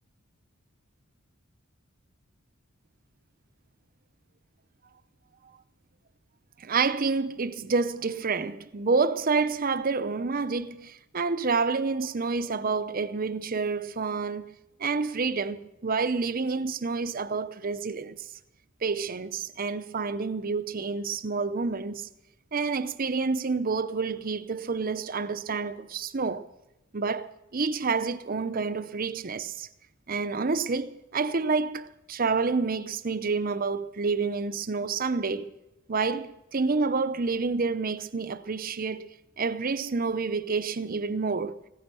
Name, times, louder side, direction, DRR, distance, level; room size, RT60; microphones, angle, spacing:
voice 1, 6.6-14.5 14.8-18.2 18.8-22.1 22.5-26.5 26.9-29.7 30.1-35.5 35.9-39.1 39.4-41.6, right 4 dB, 40° right, 0.7 m, -28 dB
16.5 x 9.7 x 7.6 m
head